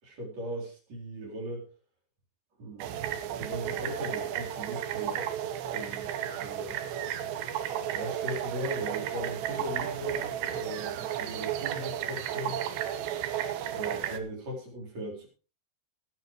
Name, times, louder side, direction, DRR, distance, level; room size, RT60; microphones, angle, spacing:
voice 1, 0.0-1.7 2.6-3.0 3.4-5.3 5.7-6.8 7.9-12.6 13.7-15.3, equal, 40° right, -1 dB, 4.7 m, -38 dB
sound 1, 2.8-14.2, right 10 dB, 80° right, 3.2 m, -33 dB
20.0 x 9.7 x 3.1 m, 0.34 s
omnidirectional pair, 5.0 m